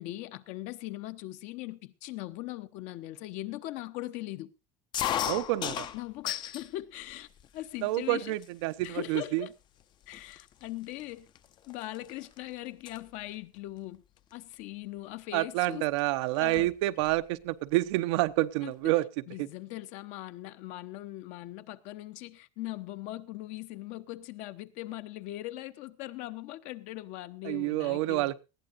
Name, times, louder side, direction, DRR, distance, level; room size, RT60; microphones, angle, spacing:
voice 1, 0.0-4.5 5.9-8.3 8.8-9.5 10.1-11.3 11.7-14.0 14.3-15.9 16.4-16.7 18.6-18.9 19.3-28.3, left 16 dB, 55° left, 0.9 m, -40 dB
sound 1, 4.9-6.7 7.1-7.8 8.4-8.5 8.8-9.2 9.8-9.9 10.1-12.4 12.7-13.0 14.3-14.5 15.6-15.7 16.0-16.1 16.4-17.2, left 11 dB, 30° left, 0.6 m, -35 dB
voice 2, 5.2-5.9 7.8-9.5 15.3-19.1 19.4-19.5 27.4-28.4, right 18 dB, 85° right, 0.8 m, -28 dB
19.5 x 15.0 x 2.5 m
cardioid pair, 165°, 14 cm